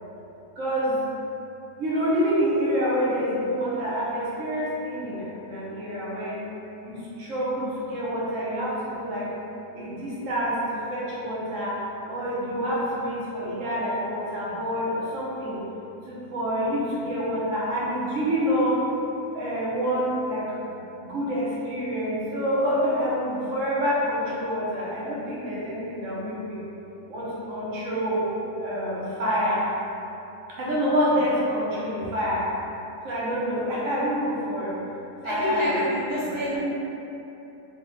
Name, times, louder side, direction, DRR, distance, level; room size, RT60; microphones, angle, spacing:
voice 1, 0.6-1.0 1.8-6.4 6.8-9.3 9.7-11.8 12.1-15.6 16.1-18.8 19.3-20.7 21.0-26.6 27.1-28.2 28.6-29.6 30.6-32.5 33.0-34.7 35.2-35.8 36.1-36.6, equal, 65° right, -8 dB, 1.0 m, -27 dB
voice 2, 35.2-36.6, left 1 dB, 50° left, -11 dB, 0.8 m, -28 dB
3.4 x 2.1 x 3.1 m, 3.0 s
omnidirectional pair, 1.5 m